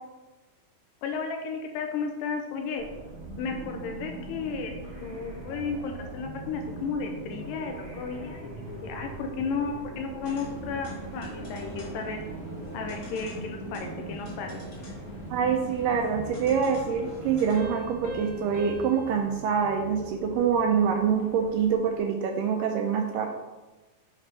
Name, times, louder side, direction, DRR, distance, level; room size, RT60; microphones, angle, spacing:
voice 1, 1.0-2.9 3.4-4.7 5.0-8.5 8.8-12.2 12.7-14.6, left 5 dB, 80° left, 3 dB, 2.1 m, -33 dB
sound 1, 2.8-22.0, right 2 dB, 55° right, 0.5 m, -41 dB
sound 2, 10.2-17.6, equal, 25° left, 1.7 m, -43 dB
voice 2, 15.3-23.4, right 6 dB, 80° right, 3 dB, 2.0 m, -25 dB
sound 3, 17.5-20.8, right 1 dB, 60° left, 2.9 m, -43 dB
6.9 x 5.0 x 4.1 m, 1.2 s
omnidirectional pair, 4.2 m